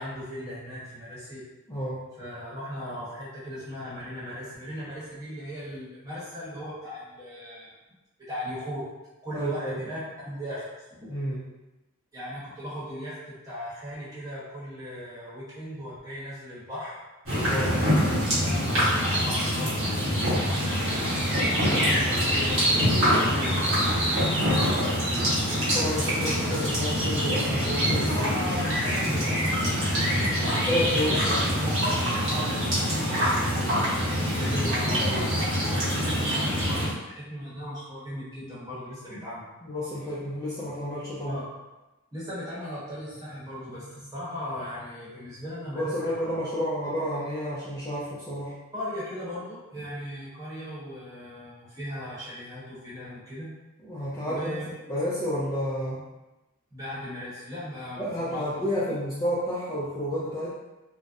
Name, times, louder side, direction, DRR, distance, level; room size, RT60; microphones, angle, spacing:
voice 1, 0.0-1.4 2.2-7.7 8.2-8.8 9.2-11.1 12.1-17.0 18.4-21.1 21.5-24.9 28.1-31.1 32.3-34.1 34.4-39.4 41.3-41.4 42.1-46.4 48.7-53.5 54.2-54.7 56.7-58.6, equal, 15° right, -10 dB, 0.9 m, -37 dB
voice 2, 1.7-2.0 9.3-9.8 11.1-11.4 17.4-17.8 25.7-28.3 30.7-31.7 39.1-39.2 39.6-41.4 45.8-48.5 53.8-54.6 54.9-56.0 58.0-60.5, equal, 15° left, -9 dB, 0.3 m, -30 dB
sound 1, 17.3-36.9, equal, 75° right, 1.0 m, -25 dB
2.6 x 2.0 x 2.3 m, 1.1 s
head